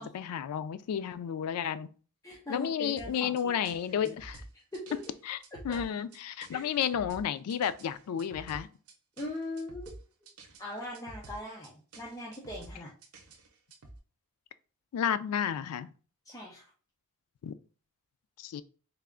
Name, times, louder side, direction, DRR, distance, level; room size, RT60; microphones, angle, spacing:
voice 1, 0.0-1.9 2.5-4.4 5.3-5.4 5.6-8.7 14.9-15.9 17.4-17.6 18.4-18.6, left 8 dB, 85° left, 0.3 m, -32 dB
voice 2, 2.2-3.7 4.0-4.1 4.7-5.0 5.7-5.8 6.5-6.6 9.2-9.9 10.6-12.9 16.3-16.6, left 1 dB, 15° left, 0.6 m, -40 dB
sound 1, 3.0-14.0, right 2 dB, 75° right, 0.7 m, -50 dB
3.3 x 2.4 x 3.6 m
head